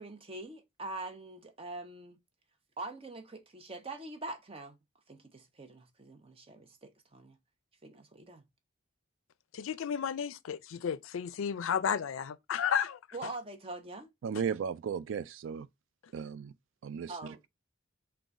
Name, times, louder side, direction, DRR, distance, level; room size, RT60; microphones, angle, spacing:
voice 1, 0.0-2.2 2.8-4.8 5.1-7.4 7.8-8.5 13.1-14.1 17.1-17.5, right 2 dB, 30° right, 0.7 m, -44 dB
voice 2, 9.5-13.0, left 8 dB, 85° left, 0.4 m, -32 dB
voice 3, 14.2-15.7 16.1-16.5 16.8-17.1, right 7 dB, 75° right, 0.3 m, -35 dB
3.8 x 2.3 x 4.6 m
head